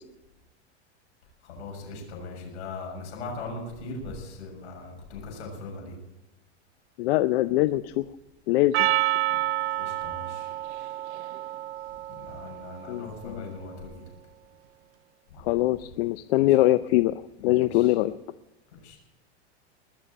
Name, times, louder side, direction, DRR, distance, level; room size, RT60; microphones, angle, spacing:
voice 1, 1.4-6.0 9.4-9.5 9.8-10.5 12.2-14.0 15.3-15.5 16.4-16.5 17.4-17.9 18.8-19.0, left 3 dB, 80° left, 0 dB, 7.1 m, -39 dB
voice 2, 7.0-8.0 8.5-8.9 12.9-13.5 15.4-18.1, left 17 dB, 60° left, 13 dB, 0.6 m, -23 dB
Percussion, 8.7-13.3, right 14 dB, 75° right, 0.6 m, -29 dB
20.5 x 7.0 x 8.8 m, 0.98 s
supercardioid pair, 125°, 34 cm